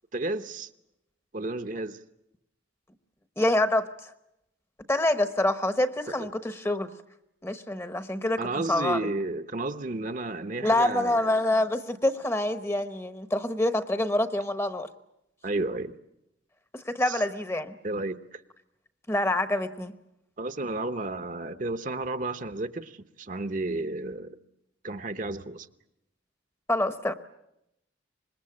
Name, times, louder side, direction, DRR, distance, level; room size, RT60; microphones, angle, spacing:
voice 1, 0.1-0.7 1.3-2.0 6.2-6.3 8.4-11.3 15.4-15.9 17.1-17.2 17.8-18.4 20.4-24.4 24.8-25.7, right 2 dB, 45° right, 0.9 m, -32 dB
voice 2, 3.4-3.8 4.9-6.9 7.4-9.0 10.6-14.9 16.7-17.8 19.1-19.9 26.7-27.1, left 1 dB, 15° left, 0.9 m, -26 dB
25.5 x 21.0 x 8.7 m
head